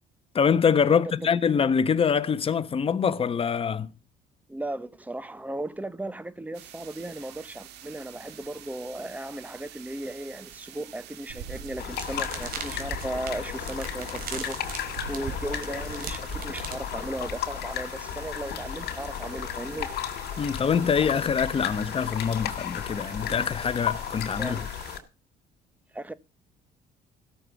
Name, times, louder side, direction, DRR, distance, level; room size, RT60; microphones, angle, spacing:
voice 1, 0.3-3.9 20.4-24.6, left 6 dB, 35° left, 1.2 m, -24 dB
voice 2, 4.5-14.6 15.1-19.9 24.4-24.7 25.9-26.1, right 1 dB, 10° right, 1.1 m, -36 dB
sound 1, 6.5-25.0, right 10 dB, 80° right, 2.1 m, -48 dB
sound 2, 11.3-16.8, right 6 dB, 60° right, 3.8 m, -38 dB
sound 3, 11.8-25.0, left 10 dB, 70° left, 3.3 m, -34 dB
16.0 x 7.0 x 7.1 m
cardioid pair, 110°, 17 cm